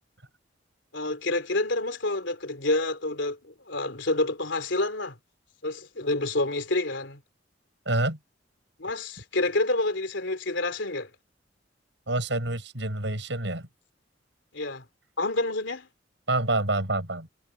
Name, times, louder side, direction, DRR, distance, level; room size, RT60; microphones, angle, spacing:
voice 1, 0.9-5.2 5.6-7.2 8.8-11.1 14.5-14.8 15.2-15.9, left 2 dB, 70° left, 3.3 m, -28 dB
voice 2, 7.9-8.2 12.1-13.7 16.3-17.3, right 2 dB, 65° right, 7.2 m, -27 dB
head